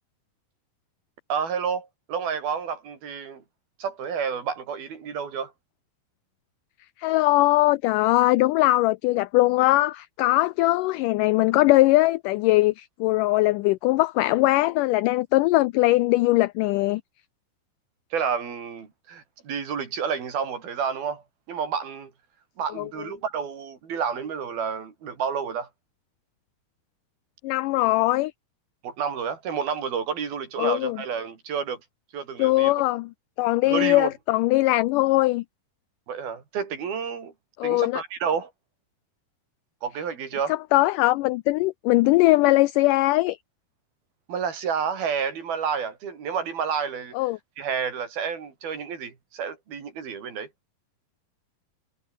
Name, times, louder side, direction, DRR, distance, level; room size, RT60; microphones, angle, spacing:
voice 1, 1.3-3.4 3.8-5.5 18.1-22.1 22.6-25.7 28.8-31.8 32.1-32.7 33.7-34.1 36.1-37.3 37.6-38.5 39.8-40.5 44.3-47.2 47.6-50.5, right 6 dB, 80° right, 5.8 m, -30 dB
voice 2, 7.0-17.0 22.8-22.9 27.4-28.3 30.6-31.0 32.4-33.1 33.4-35.4 37.6-38.0 40.5-43.4 47.1-47.4, left 19 dB, 90° left, 1.8 m, -21 dB
omnidirectional pair, 4.3 m